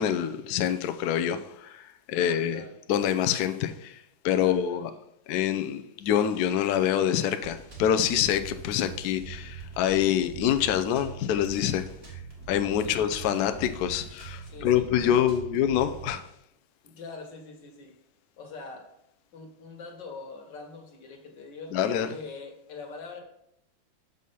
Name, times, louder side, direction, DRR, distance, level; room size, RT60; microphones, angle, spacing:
voice 1, 0.0-2.6 2.9-4.0 4.2-4.9 5.3-11.9 12.5-16.2 21.7-22.1, left 10 dB, 80° left, 0.8 m, -26 dB
voice 2, 2.1-2.7 4.4-4.8 12.8-13.5 14.4-15.3 16.8-17.9 18.4-18.9 19.3-21.7 22.1-23.2, left 4 dB, 60° left, 1.9 m, -43 dB
sound 1, 7.4-16.1, right 5 dB, 30° right, 1.8 m, -43 dB
6.4 x 5.5 x 5.4 m
omnidirectional pair, 2.3 m